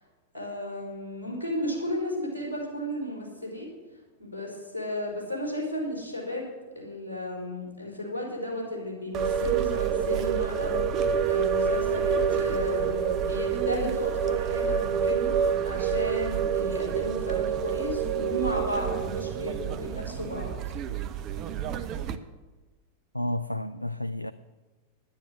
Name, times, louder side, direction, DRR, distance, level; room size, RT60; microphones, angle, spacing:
voice 1, 0.3-3.7 4.2-6.5 6.7-20.5, left 1 dB, 85° right, -2 dB, 4.8 m, -34 dB
sound 1, 9.1-22.2, right 7 dB, 35° right, 0.8 m, -28 dB
voice 2, 23.1-24.3, left 1 dB, 90° left, 11 dB, 0.4 m, -31 dB
10.0 x 10.0 x 7.6 m, 1.3 s
figure-of-eight pair, 90°, 0 cm